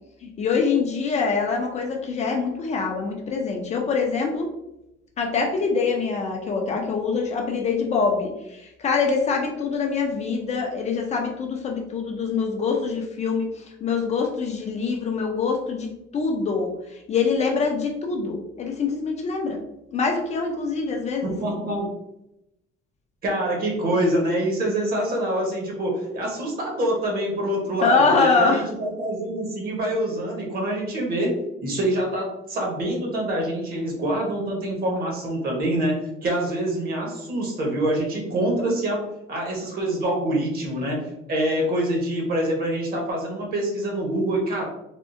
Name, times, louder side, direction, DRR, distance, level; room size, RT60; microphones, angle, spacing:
voice 1, 0.2-4.5 5.2-19.6 19.9-21.3 27.8-28.7, left 4 dB, 30° left, 1 dB, 0.4 m, -24 dB
voice 2, 21.2-21.9 23.2-31.3 31.6-39.0 39.3-44.6, right 1 dB, 45° right, 0 dB, 1.0 m, -25 dB
3.5 x 2.0 x 2.5 m, 0.85 s
cardioid pair, 145°, 21 cm